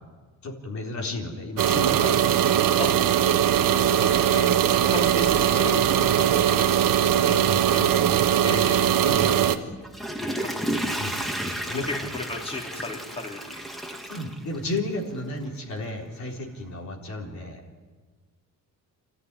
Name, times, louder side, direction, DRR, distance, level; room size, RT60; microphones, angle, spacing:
voice 1, 0.4-2.7 7.2-8.2 8.4-8.6 9.0-9.7 11.0-11.2 11.7-11.9 14.1-17.6, left 2 dB, 55° left, 0 dB, 4.0 m, -33 dB
sound 1, 1.6-9.6, right 10 dB, 80° right, 1.4 m, -21 dB
voice 2, 3.7-6.7 7.7-8.1 8.4-8.8 10.4-10.6 11.9-13.6, left 2 dB, 15° left, 0 dB, 3.8 m, -34 dB
Water / Toilet flush, 9.7-15.0 15.5-15.6, right 1 dB, ahead, 2.2 m, -32 dB
28.5 x 14.0 x 9.7 m, 1.4 s
cardioid pair, 125°, 33 cm